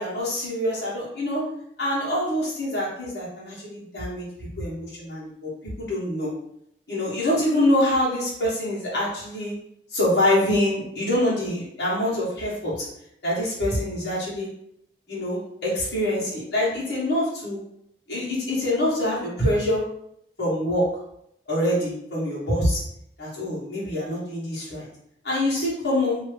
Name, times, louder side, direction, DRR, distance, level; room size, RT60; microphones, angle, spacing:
voice 1, 0.0-1.4 1.8-4.3 4.6-5.5 5.8-6.3 6.9-9.5 9.9-12.7 13.2-14.5 15.1-17.6 18.1-19.8 20.4-20.8 21.5-22.8 23.2-24.9 25.2-26.2, left 1 dB, 80° left, -7 dB, 1.4 m, -25 dB
2.8 x 2.6 x 3.2 m, 0.75 s
head